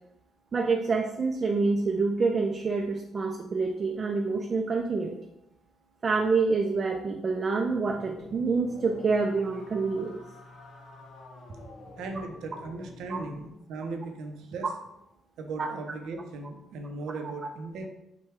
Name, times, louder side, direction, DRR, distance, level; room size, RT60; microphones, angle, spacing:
voice 1, 0.5-5.2 6.0-10.2 13.1-13.2 14.6-14.7 15.6-15.7, right 4 dB, 40° right, 2 dB, 0.4 m, -27 dB
sound 1, 7.6-13.5, left 2 dB, 70° left, 0.8 m, -48 dB
voice 2, 12.0-14.7 15.4-17.9, right 3 dB, 85° right, 4 dB, 0.6 m, -37 dB
5.7 x 2.2 x 3.4 m, 0.85 s
cardioid pair, 90°, 0 cm